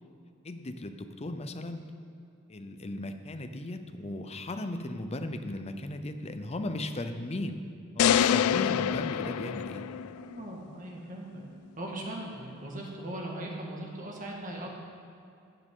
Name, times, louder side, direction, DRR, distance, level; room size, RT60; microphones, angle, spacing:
voice 1, 0.4-2.0 2.5-7.6 7.9-9.9, left 1 dB, 30° left, 7 dB, 0.6 m, -36 dB
sound 1, 8.0-10.3, left 9 dB, 75° left, 0.3 m, -26 dB
voice 2, 10.2-11.4 11.8-14.7, right 1 dB, 40° right, -1 dB, 1.7 m, -39 dB
16.0 x 7.4 x 3.8 m, 2.6 s
head